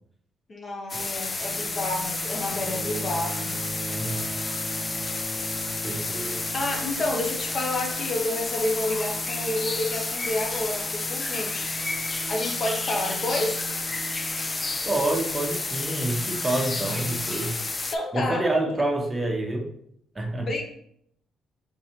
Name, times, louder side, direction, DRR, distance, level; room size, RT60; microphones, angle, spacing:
voice 1, 0.5-3.6 6.2-11.7 12.1-13.6 17.9-18.7 20.4-20.6, left 2 dB, 45° left, 2 dB, 0.9 m, -30 dB
sound 1, 0.9-17.9, left 3 dB, 25° left, 0.3 m, -31 dB
sound 2, 1.4-17.5, right 4 dB, 65° right, 0.7 m, -42 dB
Bowed string instrument, 2.5-7.9 9.0-9.1, equal, 45° right, 1.0 m, -39 dB
voice 2, 5.8-6.4 14.9-17.6 18.1-19.7 20.1-20.5, right 2 dB, 20° right, 2 dB, 0.9 m, -27 dB
3.7 x 3.1 x 4.3 m, 0.69 s
cardioid pair, 90°, 0 cm